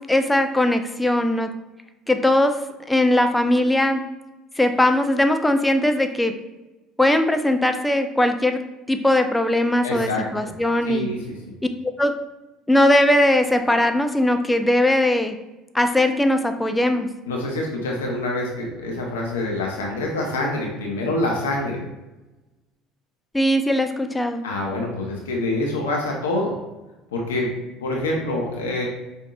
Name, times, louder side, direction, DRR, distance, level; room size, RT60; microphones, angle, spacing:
voice 1, 0.1-1.5 2.1-2.6 2.9-4.0 4.6-6.3 7.0-8.6 8.9-11.1 11.8-12.1 12.7-15.4 15.7-17.1 23.3-24.4, left 1 dB, 10° left, 7 dB, 0.5 m, -19 dB
voice 2, 9.8-10.5 10.9-11.3 17.3-21.8 24.4-26.5 27.1-27.5 27.8-28.9, left 2 dB, 85° left, -1 dB, 0.7 m, -26 dB
5.2 x 2.7 x 2.3 m, 1.1 s
hypercardioid pair, 70°, 0 cm